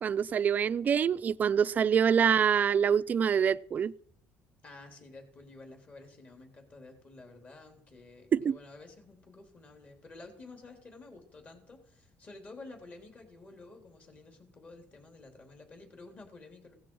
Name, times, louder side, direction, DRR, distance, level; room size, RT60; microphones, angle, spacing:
voice 1, 0.0-3.9 8.3-8.6, right 7 dB, 40° right, 0.5 m, -25 dB
voice 2, 4.6-16.7, left 3 dB, 35° left, 3.3 m, -51 dB
17.0 x 13.0 x 4.7 m
cardioid pair, 120°, 5 cm